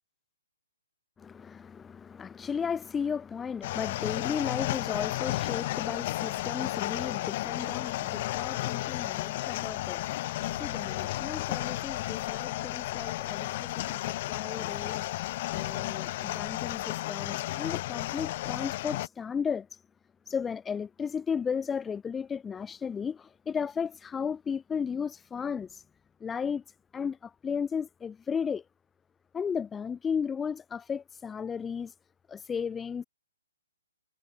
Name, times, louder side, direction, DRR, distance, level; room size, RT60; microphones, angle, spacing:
voice 1, 1.2-19.7 20.3-25.8 26.2-26.6 26.9-28.6 29.3-31.9 32.3-33.0, left 6 dB, 10° left, 0.8 m, -35 dB
sound 1, 3.6-19.1, left 17 dB, 40° left, 2.1 m, -33 dB
sound 2, 10.4-15.9, left 6 dB, 65° left, 7.7 m, -49 dB
hypercardioid pair, 135°, 0 cm